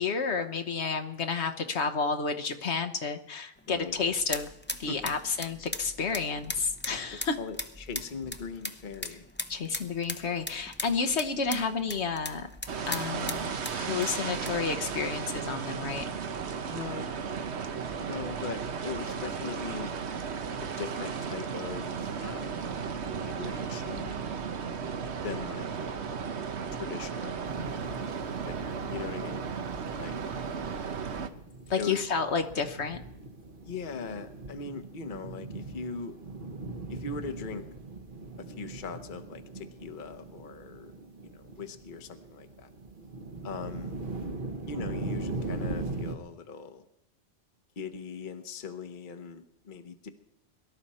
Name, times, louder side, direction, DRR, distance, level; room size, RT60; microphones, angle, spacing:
voice 1, 0.0-4.5 4.8-7.4 9.5-12.5 12.9-16.1 31.7-33.0, left 5 dB, 70° left, 7 dB, 1.3 m, -31 dB
sound 1, 3.6-15.2, left 1 dB, 10° left, 0.7 m, -40 dB
voice 2, 7.1-9.3 16.7-17.1 18.0-19.9 20.6-22.7 23.0-24.2 25.2-26.0 26.7-27.4 28.4-29.4 30.0-30.2 31.8-32.0 33.7-36.1 36.9-37.6 38.4-40.9 41.2-42.7 43.4-43.9 44.7-46.8 47.8-50.1, left 5 dB, 45° left, 8 dB, 1.1 m, -40 dB
sound 2, 12.7-31.3, right 6 dB, 70° right, 1.2 m, -35 dB
sound 3, 27.4-46.1, right 3 dB, 45° right, 1.4 m, -40 dB
22.5 x 13.0 x 4.3 m, 0.83 s
omnidirectional pair, 1.2 m